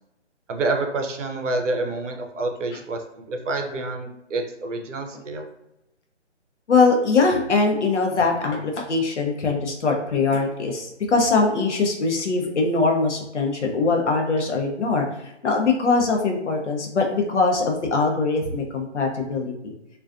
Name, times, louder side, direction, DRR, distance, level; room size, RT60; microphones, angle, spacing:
voice 1, 0.5-3.0 3.3-5.5, right 2 dB, 85° right, 4 dB, 0.6 m, -27 dB
voice 2, 6.7-15.1 15.4-19.7, left 3 dB, 75° left, 2 dB, 0.7 m, -22 dB
2.3 x 2.3 x 2.4 m, 0.85 s
hypercardioid pair, 175°, 36 cm